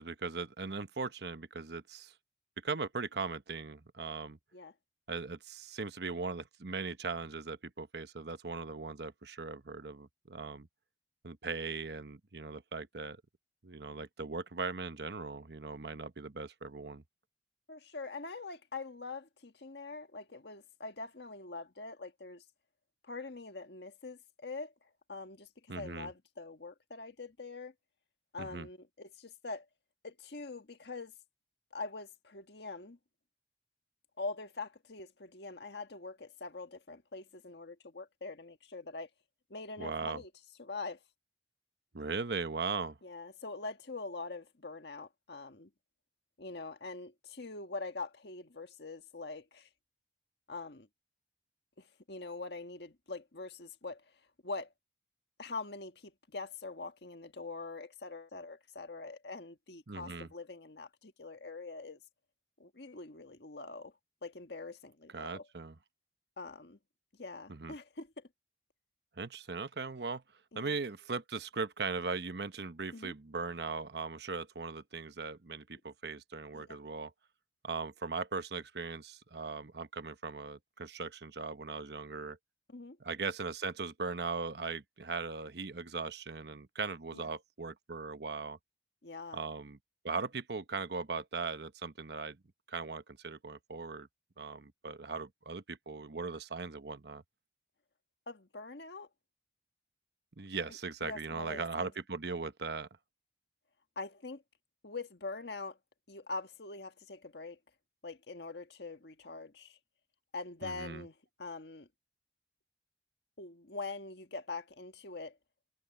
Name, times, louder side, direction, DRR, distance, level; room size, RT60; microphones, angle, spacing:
voice 1, 0.0-2.1 2.6-4.4 5.1-10.7 11.2-13.2 13.6-17.0 25.7-26.1 28.4-28.7 39.8-40.2 41.9-43.0 59.9-60.3 65.1-65.7 67.5-67.7 69.2-70.2 70.5-77.1 77.6-82.4 83.0-88.6 89.3-89.8 90.0-92.4 92.7-94.1 94.4-97.2 100.4-102.9 110.6-111.0, right 4 dB, 70° right, 1.0 m, -39 dB
voice 2, 17.7-22.4 23.1-24.7 25.1-25.5 25.7-27.7 28.3-29.6 30.0-31.1 31.7-33.0 34.2-39.1 39.5-40.3 40.6-41.0 43.0-45.7 46.4-49.7 50.5-50.9 51.8-54.0 54.4-54.7 55.4-62.0 62.6-63.9 64.2-65.5 66.4-66.8 67.2-68.3 70.5-70.8 72.9-73.1 76.5-76.8 82.7-83.0 87.1-87.2 89.0-89.4 98.3-99.1 101.0-101.9 103.9-104.4 104.8-105.8 106.1-107.6 108.0-109.8 110.3-111.1 111.4-111.9 113.4-115.4, left 3 dB, 70° left, 1.5 m, -44 dB
head